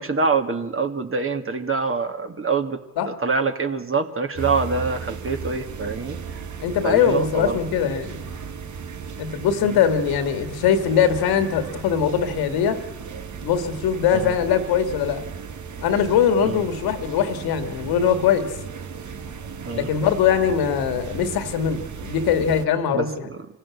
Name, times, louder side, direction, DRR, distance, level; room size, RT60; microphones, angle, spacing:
voice 1, 0.0-2.8 3.1-6.2 6.8-7.6 9.6-9.8 14.1-14.4 16.4-16.6 19.6-19.9 22.9-23.5, right 4 dB, 35° right, 5 dB, 2.3 m, -25 dB
sound 1, 4.3-22.7, right 6 dB, 50° right, 2.0 m, -36 dB
voice 2, 6.6-8.2 9.2-12.8 13.4-15.2 15.8-18.5 19.7-23.1, left 8 dB, 80° left, 9 dB, 2.2 m, -21 dB
25.0 x 16.0 x 8.6 m, 1.0 s
supercardioid pair, 60°, 37 cm